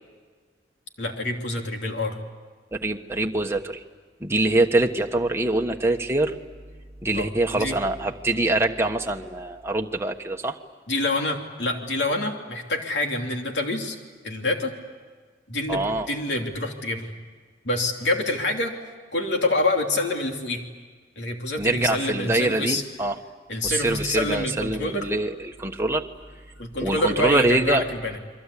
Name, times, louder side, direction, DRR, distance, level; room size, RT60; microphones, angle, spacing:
voice 1, 1.0-2.2 7.1-7.8 10.9-14.0 14.2-14.7 15.5-17.1 17.6-18.7 19.1-20.6 21.2-22.8 23.5-25.1 26.6-28.2, left 2 dB, 75° left, 3 dB, 3.1 m, -26 dB
voice 2, 2.7-3.8 4.2-6.4 7.0-10.6 15.7-16.1 21.6-23.2 23.6-26.1 26.8-27.9, right 2 dB, 15° right, 3 dB, 1.2 m, -24 dB
29.5 x 23.0 x 8.4 m, 1.5 s
head